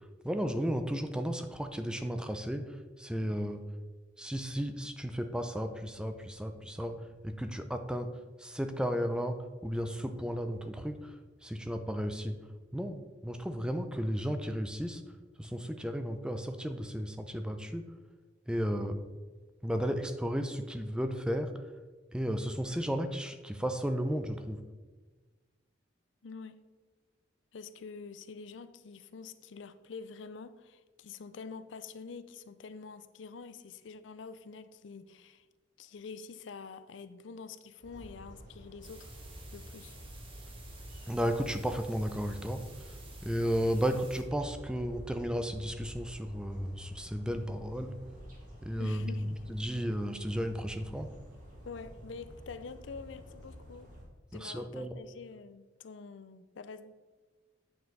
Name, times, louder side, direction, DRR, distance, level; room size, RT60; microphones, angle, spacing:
voice 1, 0.2-3.7 4.2-7.0 7.2-8.1 8.4-11.1 11.4-12.4 12.7-15.0 15.4-17.8 18.5-19.0 19.6-21.5 22.1-24.6 41.1-42.6 43.2-48.0 48.6-51.1 54.3-55.0, equal, 5° right, 7 dB, 0.5 m, -34 dB
voice 2, 26.2-26.6 27.5-35.5 35.8-39.1 39.5-40.0 48.8-49.6 51.6-53.9 54.3-57.1, left 5 dB, 85° left, 13 dB, 0.5 m, -46 dB
sound 1, 37.8-54.0, equal, 45° right, 2.3 m, -49 dB
sound 2, 38.8-44.2, right 4 dB, 30° right, 1.3 m, -54 dB
8.4 x 6.8 x 4.1 m, 1.3 s
head